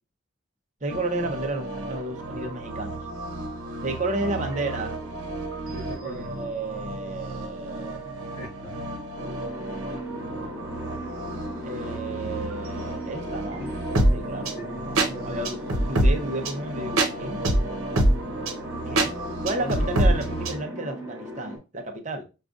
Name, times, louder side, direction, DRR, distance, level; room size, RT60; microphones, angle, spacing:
voice 1, 0.8-3.0 3.8-5.0 6.0-8.1 11.6-13.7 14.1-14.6 15.3-17.4 18.9-19.1 19.4-22.2, right 2 dB, 35° right, 0.7 m, -32 dB
sound 1, 0.9-20.6, right 1 dB, 80° right, 0.9 m, -28 dB
voice 2, 4.2-4.8 5.7-6.3 8.4-8.8 13.6-13.7 14.6-15.5 19.6-20.2, left 1 dB, 25° left, 0.4 m, -39 dB
sound 2, 9.2-21.6, equal, 10° right, 1.2 m, -38 dB
6.4 x 2.4 x 2.4 m
head